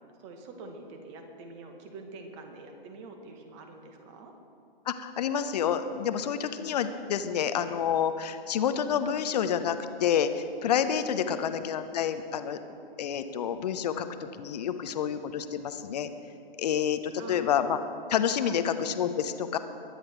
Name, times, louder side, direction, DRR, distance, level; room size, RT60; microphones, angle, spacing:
voice 1, 0.2-4.3 11.3-11.4 17.2-17.6 18.4-18.6, right 3 dB, 30° right, 4 dB, 1.8 m, -45 dB
voice 2, 4.9-12.6 13.0-16.1 16.6-17.8 18.1-19.6, left 8 dB, 45° left, 10 dB, 0.9 m, -28 dB
21.5 x 10.0 x 4.6 m, 2.5 s
figure-of-eight pair, 135°, 30 cm